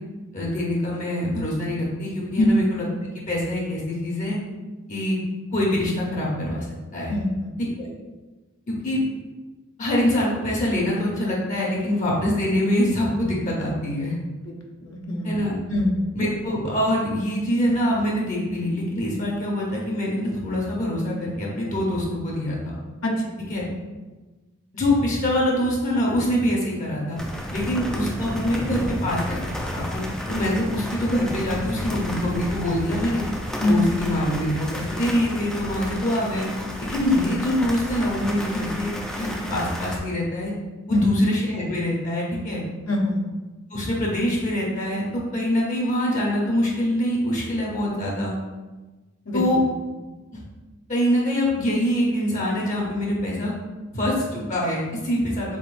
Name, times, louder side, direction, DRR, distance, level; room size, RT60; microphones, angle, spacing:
voice 1, 0.3-2.8 3.3-4.4 4.9-5.2 5.5-6.7 6.9-7.2 7.6-7.9 8.7-9.0 9.8-14.2 15.2-15.5 16.1-22.8 23.5-23.6 24.7-27.2 27.5-30.0 30.3-33.2 33.6-36.5 36.9-38.9 39.2-40.5 40.9-42.6 43.7-48.3 49.3-49.6 50.9-53.5 53.9-55.6, left 1 dB, 40° left, -4 dB, 0.8 m, -24 dB
voice 2, 7.1-7.6 14.4-14.5 14.8-15.3 15.7-16.0 23.0-23.1 33.6-33.9 40.9-41.1 42.9-43.2 49.3-49.4, left 1 dB, 70° left, -1 dB, 0.7 m, -23 dB
sound 1, 27.2-40.0, left 1 dB, 5° left, 0.4 m, -32 dB
3.9 x 3.7 x 2.5 m, 1.2 s
head